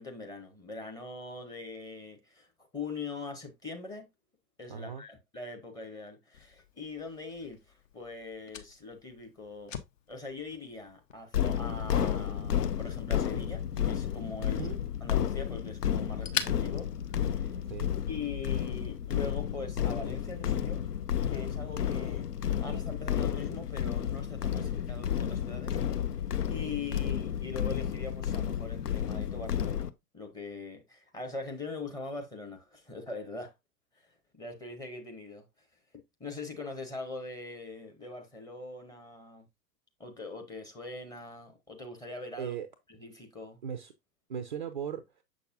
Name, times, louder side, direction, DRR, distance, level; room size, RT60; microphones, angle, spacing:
voice 1, 0.0-2.5 2.7-4.1 4.6-9.8 10.1-14.6 15.0-17.6 18.1-20.9 21.3-22.3 22.6-26.2 26.5-29.9 30.1-33.5 34.0-35.5 36.2-39.5 40.0-42.5 42.9-43.6, left 3 dB, 10° left, 0.8 m, -42 dB
voice 2, 4.7-5.0 14.5-14.8 17.6-17.9 42.4-42.7 43.6-43.9 44.3-45.2, right 8 dB, 35° right, 0.4 m, -38 dB
Fire, 6.3-17.9, left 7 dB, 50° left, 1.0 m, -45 dB
sound 1, 11.3-29.9, left 9 dB, 70° left, 0.7 m, -32 dB
6.6 x 6.1 x 2.5 m
figure-of-eight pair, 110°, 49 cm